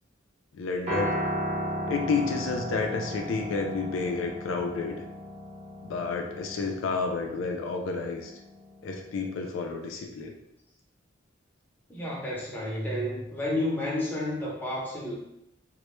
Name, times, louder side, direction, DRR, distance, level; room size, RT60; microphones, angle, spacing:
voice 1, 0.5-1.1 1.9-5.0 5.8-8.3 8.8-10.3, left 4 dB, 75° left, 2 dB, 0.3 m, -30 dB
Piano, 0.9-9.1, equal, 35° right, 0.6 m, -35 dB
voice 2, 11.9-15.1, left 1 dB, 10° left, -5 dB, 0.5 m, -31 dB
2.1 x 2.1 x 3.0 m, 0.82 s
head